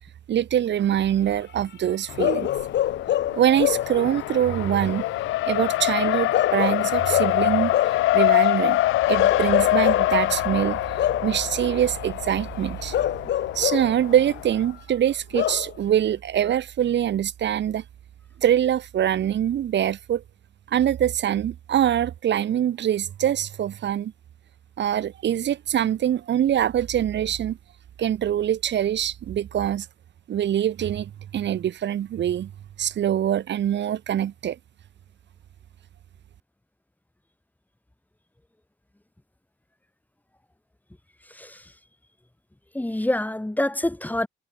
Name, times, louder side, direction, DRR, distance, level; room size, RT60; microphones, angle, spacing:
voice 1, 0.3-2.5 3.3-5.0 5.5-7.7 8.1-8.8 9.1-10.8 11.2-13.0 13.5-17.8 18.4-20.2 20.7-24.1 24.8-27.6 28.0-29.9 30.3-32.5 32.8-34.6, right 10 dB, 65° right, 2.1 m, -24 dB
Race car auto racing, 2.1-14.7, left 16 dB, 85° left, 1.0 m, -25 dB
Bark / Livestock farm animals working animals, 2.2-4.0 6.3-8.1 9.2-10.2 11.0-11.4 12.9-14.0 15.3-15.7, left 11 dB, 60° left, 0.8 m, -25 dB
voice 2, 42.7-44.3, left 1 dB, 10° left, 2.5 m, -26 dB
cardioid pair, 90°, 20 cm